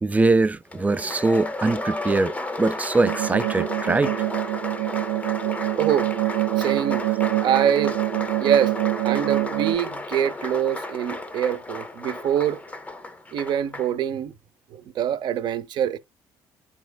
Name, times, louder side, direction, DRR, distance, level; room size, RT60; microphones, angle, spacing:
voice 1, 0.0-2.3 2.6-4.1, right 3 dB, 15° right, 0.5 m, -22 dB
Applause, 0.7-14.0, left 2 dB, 15° left, 0.8 m, -33 dB
sound 1, 3.0-9.8, right 21 dB, 85° right, 0.4 m, -25 dB
voice 2, 5.8-6.1 6.6-7.0 7.4-8.0 8.4-8.7 9.0-12.6 13.3-14.3 14.7-16.0, right 9 dB, 60° right, 0.8 m, -24 dB
11.5 x 4.4 x 2.3 m
supercardioid pair, 90°, 9 cm